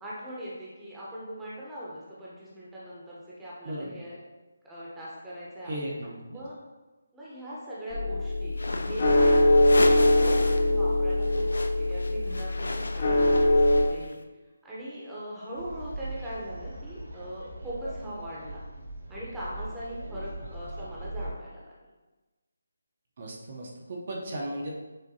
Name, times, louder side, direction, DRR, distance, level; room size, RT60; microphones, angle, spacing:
voice 1, 0.0-4.2 4.6-6.5 7.1-9.4 9.7-14.2 14.6-18.6 19.1-21.7, equal, 5° right, -8 dB, 0.8 m, -40 dB
voice 2, 3.6-4.0 5.6-6.5 20.8-20.9 23.2-24.7, right 1 dB, 45° right, -2 dB, 0.7 m, -36 dB
sound 1, 7.9-13.8, left 1 dB, 50° left, 0.7 m, -22 dB
sound 2, 8.5-10.7 11.0-14.1, left 2 dB, 85° left, 0.4 m, -35 dB
sound 3, 15.5-21.3, right 1 dB, 80° right, 1.3 m, -40 dB
6.2 x 2.5 x 2.7 m, 1.2 s
figure-of-eight pair, 165°, 0 cm